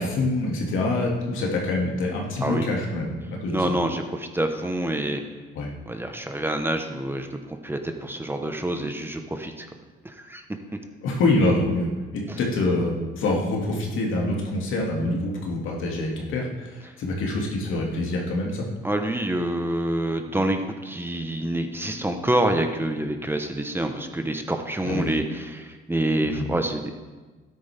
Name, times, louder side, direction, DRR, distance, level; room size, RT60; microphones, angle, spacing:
voice 1, 0.0-3.7 5.5-5.7 11.0-18.7 24.8-25.1 26.2-26.5, left 2 dB, 85° left, -1 dB, 2.4 m, -25 dB
voice 2, 3.5-5.2 5.9-9.7 10.2-10.4 18.8-26.9, right 1 dB, 10° right, 5 dB, 1.1 m, -27 dB
12.5 x 10.0 x 3.6 m, 1.3 s
cardioid pair, 90°, 20 cm